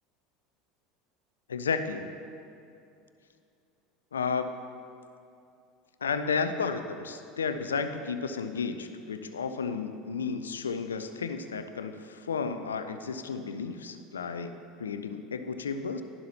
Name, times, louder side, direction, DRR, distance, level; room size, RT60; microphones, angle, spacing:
voice 1, 1.5-2.1 4.1-4.5 6.0-16.0, left 5 dB, 80° left, 9 dB, 0.5 m, -32 dB
12.0 x 11.0 x 2.9 m, 2.6 s
figure-of-eight pair, 75°, 0 cm